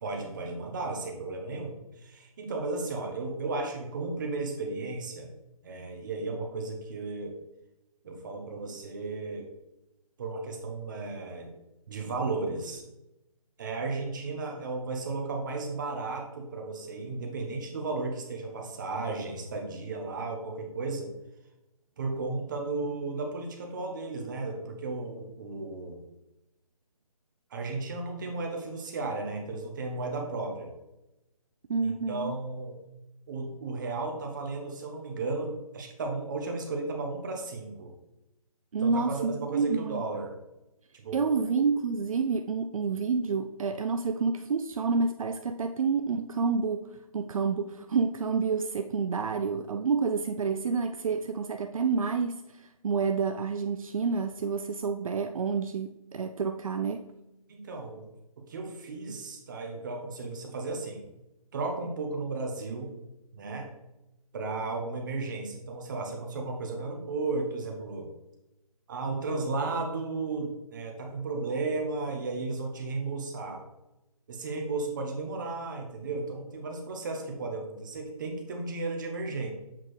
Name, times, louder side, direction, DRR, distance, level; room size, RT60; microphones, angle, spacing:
voice 1, 0.0-5.3 5.6-7.4 8.0-9.5 10.2-11.5 11.9-12.8 13.6-21.1 22.0-26.0 27.5-30.7 31.8-32.8 33.3-37.9 38.8-40.3 40.9-41.4 57.5-58.1 58.5-61.0 61.5-62.9 63.3-63.7 64.3-68.1 68.9-73.6 74.3-79.5, right 3 dB, 30° right, 2 dB, 0.9 m, -34 dB
voice 2, 31.7-32.3 38.7-40.2 41.1-57.0, right 5 dB, 65° right, 7 dB, 0.4 m, -29 dB
7.3 x 4.1 x 3.1 m, 0.94 s
hypercardioid pair, 160°, 19 cm